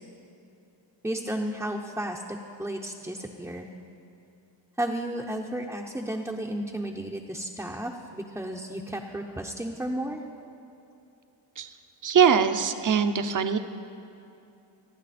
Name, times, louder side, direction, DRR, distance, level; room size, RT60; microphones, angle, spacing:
voice 1, 1.0-3.7 4.8-10.2, right 1 dB, 5° right, -1 dB, 0.7 m, -33 dB
voice 2, 12.0-13.6, right 7 dB, 40° right, 9 dB, 0.8 m, -22 dB
28.5 x 9.7 x 4.2 m, 2.8 s
wide cardioid pair, 150°, 46 cm